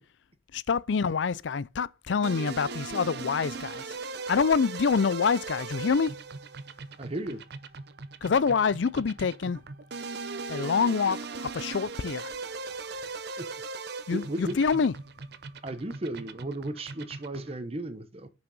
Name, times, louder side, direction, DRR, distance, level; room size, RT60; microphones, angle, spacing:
voice 1, 0.5-3.8 4.3-6.1 8.2-9.6 10.5-12.3 14.1-14.9, left 5 dB, 75° left, 0.5 m, -26 dB
sound 1, 2.2-17.6, right 4 dB, 60° right, 0.8 m, -39 dB
voice 2, 7.0-7.4 13.4-13.5 13.8-14.6 15.6-18.3, right 1 dB, 35° right, 1.1 m, -35 dB
8.9 x 6.2 x 5.4 m
head